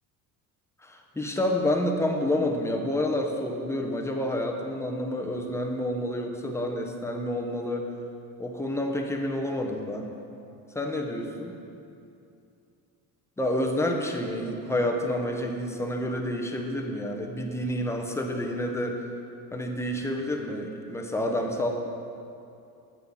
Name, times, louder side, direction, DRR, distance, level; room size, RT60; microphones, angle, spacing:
voice 1, 0.8-7.9 8.4-10.1 10.7-11.6 13.4-19.1 19.5-21.7, left 1 dB, 5° left, 2 dB, 0.9 m, -29 dB
9.1 x 6.8 x 5.4 m, 2.6 s
cardioid pair, 115°, 38 cm